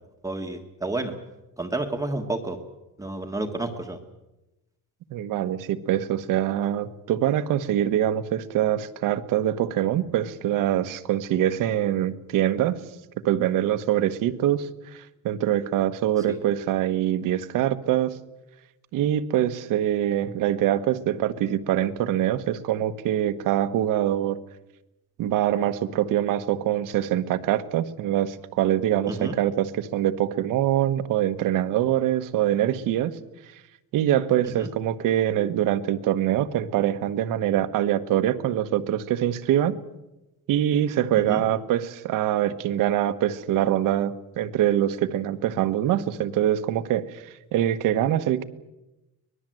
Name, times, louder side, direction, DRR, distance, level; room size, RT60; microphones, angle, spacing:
voice 1, 0.2-1.2 1.6-2.6 3.0-4.0 16.2-16.4 29.1-29.4 34.4-34.7 41.2-41.4, right 2 dB, 10° right, 3 dB, 1.5 m, -30 dB
voice 2, 5.1-12.8 13.2-18.2 18.9-24.4 25.2-33.1 33.9-39.7 40.5-48.4, right 11 dB, 65° right, 10 dB, 1.4 m, -24 dB
24.0 x 20.0 x 7.8 m, 0.97 s
cardioid pair, 175°, 34 cm